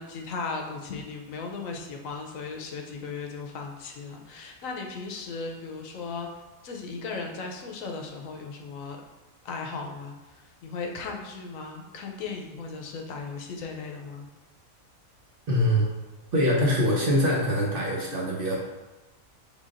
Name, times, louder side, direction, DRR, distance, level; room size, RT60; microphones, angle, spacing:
voice 1, 0.0-6.3 6.6-9.0 9.4-10.2 10.6-14.3, left 4 dB, 75° left, 2 dB, 1.0 m, -36 dB
voice 2, 15.5-15.9 16.3-18.6, equal, 50° right, -3 dB, 0.8 m, -23 dB
5.6 x 3.5 x 2.5 m, 1.1 s
omnidirectional pair, 1.4 m